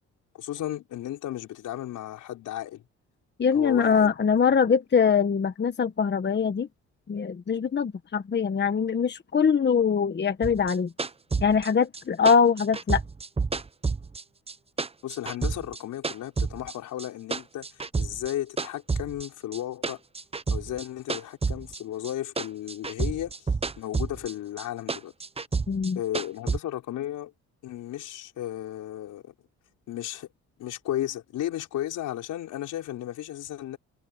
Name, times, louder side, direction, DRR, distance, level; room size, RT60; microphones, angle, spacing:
voice 1, 0.3-2.8 3.5-4.1 4.6-4.8 15.0-17.7 18.0-20.0 20.5-23.5 23.8-25.1 26.0-27.3 27.6-29.3 29.9-30.3 30.6-33.8, left 13 dB, 80° left, 5.2 m, -34 dB
voice 2, 3.4-6.7 7.1-10.9 11.4-13.0 25.7-26.0, left 6 dB, 35° left, 1.4 m, -23 dB
sound 1, 10.4-14.5 14.8-16.7 17.0-18.3 18.6-22.1 22.4-24.3 24.6-26.6, right 4 dB, 20° right, 0.9 m, -29 dB
cardioid pair, 90°, 30 cm